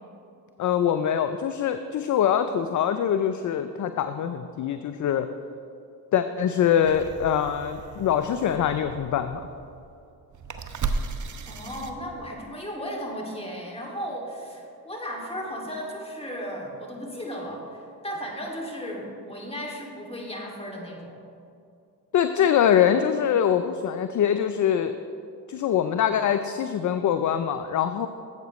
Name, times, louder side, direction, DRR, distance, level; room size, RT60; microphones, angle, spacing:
voice 1, 0.6-5.3 6.1-9.4 22.1-24.9 25.5-28.1, left 9 dB, 45° left, 10 dB, 0.5 m, -23 dB
sound 1, 6.8-12.5, right 4 dB, 40° right, 0.9 m, -36 dB
voice 2, 11.4-21.2, equal, 15° left, -1 dB, 2.5 m, -35 dB
12.5 x 7.9 x 3.1 m, 2.5 s
supercardioid pair, 55°, 44 cm